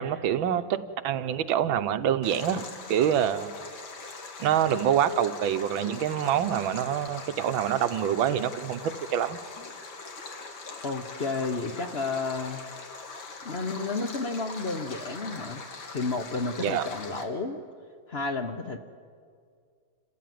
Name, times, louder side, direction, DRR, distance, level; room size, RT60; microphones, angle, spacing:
voice 1, 0.0-3.5 4.4-9.4 16.6-16.9, right 9 dB, 90° right, 11 dB, 1.6 m, -26 dB
Stream, 2.2-17.2, left 4 dB, 80° left, 2.8 m, -42 dB
voice 2, 10.8-12.6 13.4-15.6 15.9-17.6 18.1-18.8, left 3 dB, 40° left, 7 dB, 1.0 m, -31 dB
27.5 x 15.0 x 9.3 m, 2.1 s
omnidirectional pair, 2.1 m